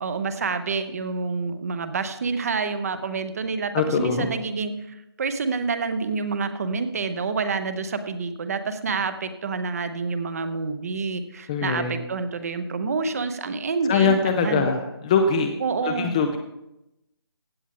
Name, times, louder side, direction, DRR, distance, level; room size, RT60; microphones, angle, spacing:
voice 1, 0.0-14.7 15.6-16.2, right 4 dB, 35° right, 10 dB, 0.9 m, -28 dB
voice 2, 3.7-4.3 11.5-11.9 13.9-15.5 15.8-16.4, left 5 dB, 15° left, 6 dB, 0.5 m, -22 dB
16.0 x 8.3 x 3.7 m, 0.88 s
figure-of-eight pair, 155°, 14 cm